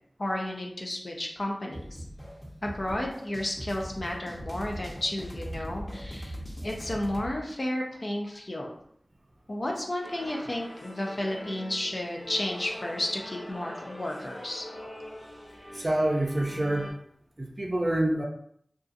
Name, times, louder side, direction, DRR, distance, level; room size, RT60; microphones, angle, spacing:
voice 1, 0.2-2.0 2.6-6.4 6.6-8.7 9.5-14.7, left 1 dB, 55° left, 0 dB, 0.5 m, -32 dB
sound 1, 1.7-7.3, equal, 10° left, 0.8 m, -40 dB
sound 2, 10.0-16.9, left 1 dB, 90° left, 0.8 m, -43 dB
voice 2, 15.7-17.0 17.4-18.2, right 1 dB, 45° right, 0 dB, 0.5 m, -27 dB
2.6 x 2.4 x 2.5 m, 0.68 s
wide cardioid pair, 40°, 0 cm